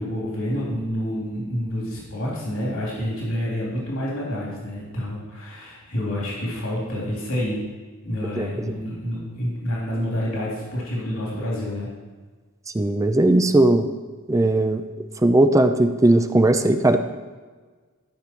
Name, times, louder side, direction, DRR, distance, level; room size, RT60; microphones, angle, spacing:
voice 1, 0.0-7.6 8.0-11.9, equal, 75° left, -5 dB, 3.1 m, -28 dB
voice 2, 12.7-13.9 14.3-14.8 15.2-17.0, right 1 dB, 15° right, 8 dB, 0.4 m, -18 dB
13.0 x 6.6 x 4.5 m, 1.4 s
head